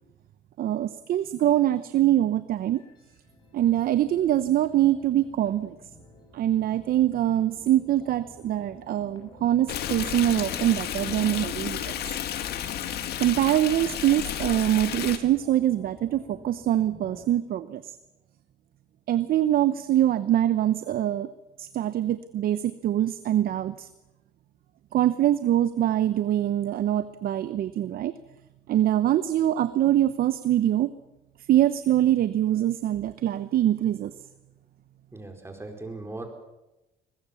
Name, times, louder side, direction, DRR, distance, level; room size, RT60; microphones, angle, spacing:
voice 1, 0.6-2.8 3.5-5.8 6.3-11.8 13.2-17.9 19.1-21.3 21.6-23.9 24.9-28.1 28.7-30.9 31.5-34.1, right 12 dB, 60° right, 13 dB, 0.9 m, -24 dB
sound 1, 2.6-17.2, left 2 dB, 25° left, 6.4 m, -51 dB
Stream, 9.7-15.2, left 10 dB, 70° left, 2.0 m, -32 dB
voice 2, 35.1-36.3, right 2 dB, 15° right, 5 dB, 4.2 m, -38 dB
22.0 x 20.5 x 7.1 m, 0.98 s
cardioid pair, 110°, 17 cm